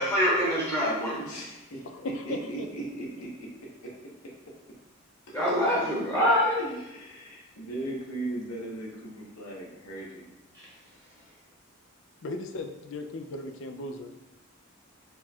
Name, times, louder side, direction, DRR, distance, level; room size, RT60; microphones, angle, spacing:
voice 1, 0.0-1.2 5.3-6.6 10.6-10.7, equal, 10° left, -6 dB, 0.9 m, -25 dB
voice 2, 1.2-1.9 2.2-3.9 5.3-5.4 5.7-5.8 6.6-10.3, right 2 dB, 80° left, -3 dB, 1.1 m, -38 dB
voice 3, 1.8-2.7 12.2-14.1, left 2 dB, 60° left, 5 dB, 0.4 m, -37 dB
4.5 x 2.3 x 4.3 m, 0.96 s
head